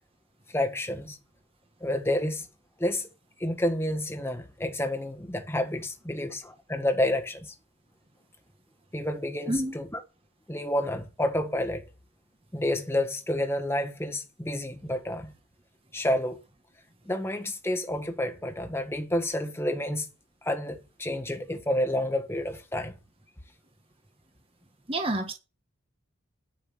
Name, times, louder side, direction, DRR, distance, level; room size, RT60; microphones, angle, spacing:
voice 1, 0.5-1.2 1.8-2.5 2.8-3.1 3.4-7.5 8.9-9.9 10.5-11.8 12.5-15.3 15.9-16.4 17.0-20.1 20.4-22.9, left 1 dB, 10° left, 1.5 m, -29 dB
voice 2, 24.9-25.3, right 1 dB, 25° right, 1.5 m, -28 dB
11.0 x 6.0 x 7.2 m
head